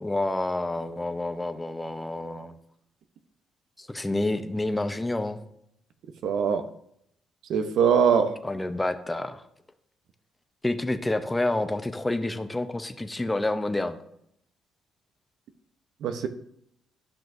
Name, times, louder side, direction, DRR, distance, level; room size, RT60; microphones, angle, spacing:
voice 1, 0.0-2.5 3.8-5.4 8.4-9.4 10.6-14.0, left 2 dB, 15° left, 0.7 m, -28 dB
voice 2, 6.2-6.7 7.5-8.4 16.0-16.3, right 7 dB, 75° right, 0.7 m, -22 dB
12.0 x 6.0 x 2.6 m
cardioid pair, 90°, 0 cm